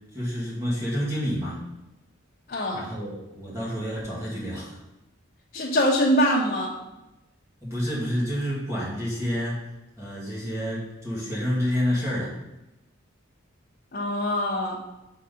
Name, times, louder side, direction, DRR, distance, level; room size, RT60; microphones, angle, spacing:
voice 1, 0.1-1.6 2.7-4.8 7.6-9.6 10.0-12.3, equal, 15° right, -7 dB, 2.1 m, -29 dB
voice 2, 2.5-2.8 5.5-6.7 13.9-14.8, equal, 50° left, -5 dB, 1.0 m, -23 dB
6.6 x 4.1 x 5.2 m, 0.96 s
head